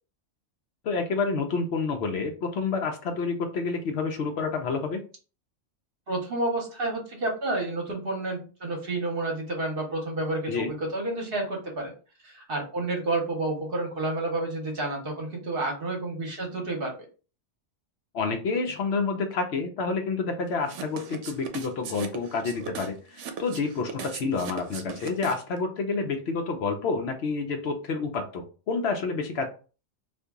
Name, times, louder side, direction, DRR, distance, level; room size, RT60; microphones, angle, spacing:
voice 1, 0.8-5.0 10.5-10.7 18.1-29.5, left 4 dB, 65° left, 5 dB, 0.8 m, -29 dB
voice 2, 6.1-11.9 12.2-16.9, right 2 dB, 55° right, 1 dB, 1.0 m, -30 dB
sound 1, 20.6-25.6, right 7 dB, 85° right, 0.9 m, -38 dB
2.8 x 2.5 x 3.5 m, 0.36 s
omnidirectional pair, 1.2 m